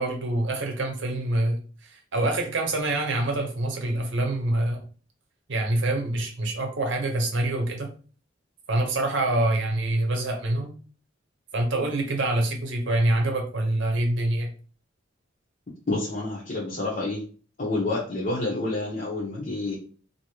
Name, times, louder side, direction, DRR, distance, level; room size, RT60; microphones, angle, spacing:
voice 1, 0.0-4.8 5.5-7.9 8.7-10.7 11.5-14.5, right 2 dB, 70° right, 3 dB, 0.8 m, -26 dB
voice 2, 15.9-17.2 17.6-19.8, left 2 dB, 45° left, -5 dB, 0.8 m, -28 dB
2.8 x 2.7 x 3.0 m, 0.40 s
head